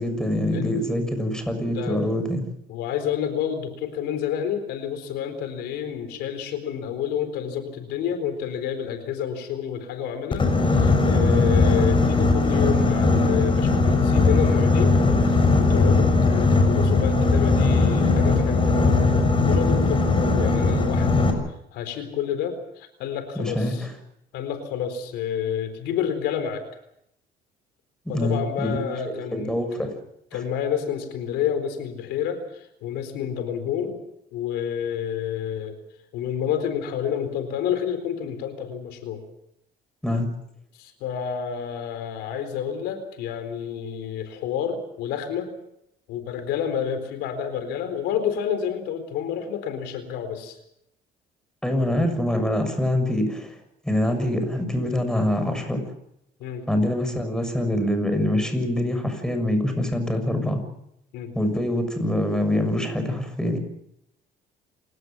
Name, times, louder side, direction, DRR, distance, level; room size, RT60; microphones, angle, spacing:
voice 1, 0.0-2.4 11.2-11.5 23.3-23.9 28.0-28.8 29.3-29.9 40.0-40.3 51.6-53.6 53.8-55.8 56.7-60.6 61.3-63.6, left 1 dB, 5° left, 7 dB, 6.7 m, -24 dB
voice 2, 1.6-2.0 2.7-19.1 19.5-21.3 21.7-23.8 24.3-26.6 28.1-29.8 30.3-34.0 34.3-35.8 36.1-39.2 40.8-45.5 46.1-50.6 56.4-56.7 61.1-61.3, left 8 dB, 90° left, 9 dB, 4.2 m, -29 dB
Boat Water vehicle, 10.3-21.3, left 3 dB, 30° left, 6.5 m, -19 dB
28.5 x 17.5 x 7.3 m, 0.78 s
cardioid pair, 110°, 17 cm